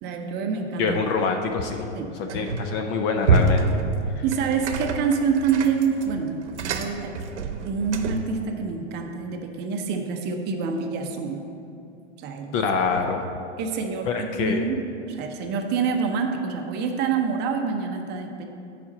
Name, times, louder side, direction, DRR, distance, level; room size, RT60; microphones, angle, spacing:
voice 1, 0.0-1.0 1.9-2.2 4.2-7.2 7.6-11.4 12.2-12.5 13.6-18.5, right 5 dB, 30° right, 4 dB, 0.7 m, -27 dB
voice 2, 0.8-1.9 2.2-3.7 4.2-4.3 12.5-13.2 14.1-14.7, left 5 dB, 30° left, 4 dB, 0.5 m, -25 dB
sound 1, 2.3-2.8 3.2-8.3, right 3 dB, 80° right, 0.9 m, -26 dB
7.0 x 5.2 x 7.1 m, 2.6 s
hypercardioid pair, 130°, 35 cm